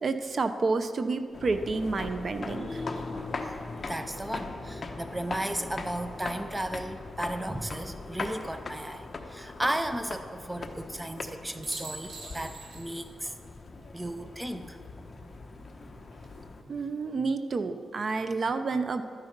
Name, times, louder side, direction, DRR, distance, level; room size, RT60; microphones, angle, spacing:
voice 1, 0.0-2.8 16.7-19.0, right 3 dB, 50° right, 9 dB, 0.7 m, -29 dB
sound 1, 1.2-1.3 2.7-5.9 7.7-8.4 11.2-11.3 11.6-13.2 13.5-13.6 15.9-16.4, right 3 dB, 90° right, 2.1 m, -48 dB
sound 2, 1.3-16.6, left 3 dB, 40° left, 1.0 m, -40 dB
voice 2, 3.9-13.3 13.9-14.8, right 1 dB, 10° right, 9 dB, 0.6 m, -34 dB
12.5 x 9.8 x 5.3 m, 2.3 s
cardioid pair, 95°, 0 cm